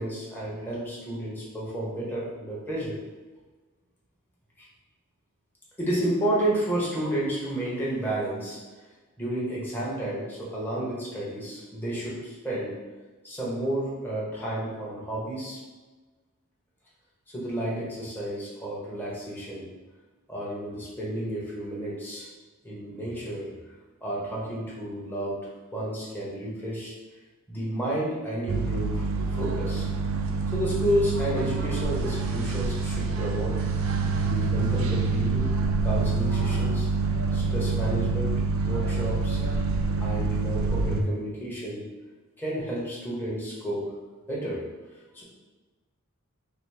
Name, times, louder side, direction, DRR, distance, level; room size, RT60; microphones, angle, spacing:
voice 1, 0.0-2.9 5.8-8.6 9.2-12.7 13.2-15.6 17.3-19.7 20.3-22.3 22.6-23.5 24.0-25.4 25.7-26.9 27.5-29.0 29.3-29.9 30.5-33.6 34.2-35.5 35.8-36.9 37.3-39.4 40.0-41.8 42.4-43.8 44.3-44.6 45.1-45.2, right 1 dB, 10° left, -6 dB, 1.0 m, -31 dB
sound 1, 28.5-41.0, right 4 dB, 65° right, 0.4 m, -26 dB
5.8 x 2.0 x 3.4 m, 1.3 s
head